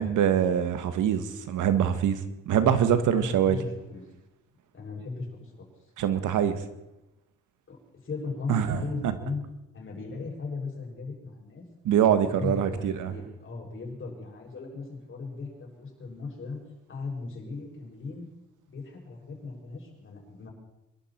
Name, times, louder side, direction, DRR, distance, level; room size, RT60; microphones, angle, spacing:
voice 1, 0.0-2.2 2.4-3.6 6.0-6.6 8.5-9.1 11.8-13.1, right 9 dB, 80° right, 10 dB, 1.6 m, -24 dB
voice 2, 3.1-4.0 4.7-5.7 7.7-7.8 8.0-9.4 9.7-11.6 12.3-16.6 16.9-18.3 18.7-20.5, left 4 dB, 40° left, -2 dB, 7.0 m, -37 dB
25.5 x 12.5 x 4.5 m, 0.94 s
cardioid pair, 90°, 30 cm